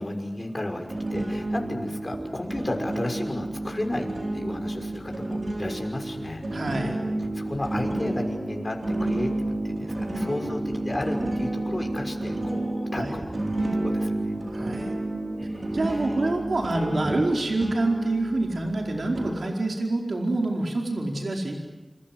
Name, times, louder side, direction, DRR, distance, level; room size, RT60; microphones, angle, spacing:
voice 1, 0.0-4.1 4.3-6.4 7.3-9.3 9.6-14.4 15.4-16.1, left 1 dB, 40° left, 3 dB, 6.1 m, -33 dB
sound 1, 0.9-19.3, right 1 dB, 70° right, 6.8 m, -30 dB
voice 2, 6.5-7.0 12.9-13.1 14.5-14.9 15.7-21.6, right 2 dB, 85° right, 1 dB, 4.7 m, -26 dB
28.0 x 26.5 x 8.0 m, 1.1 s
wide cardioid pair, 50°, 0 cm